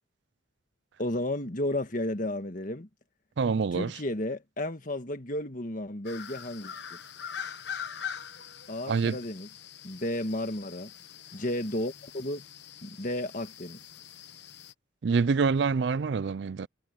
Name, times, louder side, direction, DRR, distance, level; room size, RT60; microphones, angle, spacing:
voice 1, 1.0-2.9 3.7-7.0 8.7-9.5 9.8-10.9 11.3-12.4 12.8-13.8, left 1 dB, 45° left, 1.7 m, -33 dB
voice 2, 3.4-3.9 8.9-9.2 15.0-16.7, right 5 dB, 60° right, 0.4 m, -26 dB
sound 1, 6.0-14.7, left 8 dB, 60° left, 1.2 m, -43 dB
head